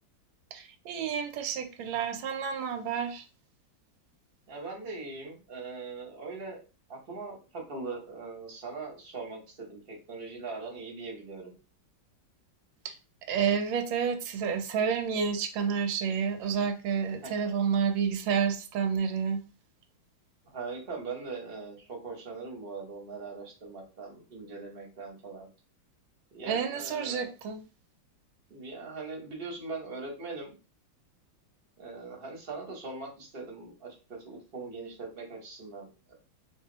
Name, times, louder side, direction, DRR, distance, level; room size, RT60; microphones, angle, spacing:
voice 1, 0.5-3.3 12.8-13.0 13.3-19.4 26.5-27.6, right 7 dB, 85° right, 1.4 m, -30 dB
voice 2, 4.5-6.6 6.9-11.5 17.2-17.3 20.4-25.5 26.3-27.3 28.5-30.6 31.8-36.2, right 3 dB, 35° right, 1.1 m, -41 dB
2.8 x 2.7 x 3.8 m
omnidirectional pair, 2.1 m